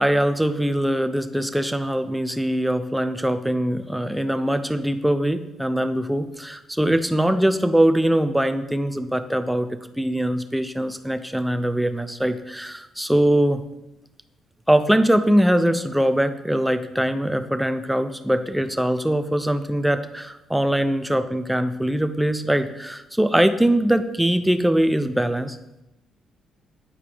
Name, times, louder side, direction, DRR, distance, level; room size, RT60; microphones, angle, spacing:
voice 1, 0.0-9.7 10.0-13.6 14.7-25.6, right 1 dB, 5° right, 10 dB, 0.5 m, -22 dB
8.5 x 4.6 x 3.5 m, 0.93 s
supercardioid pair, 70°, 0 cm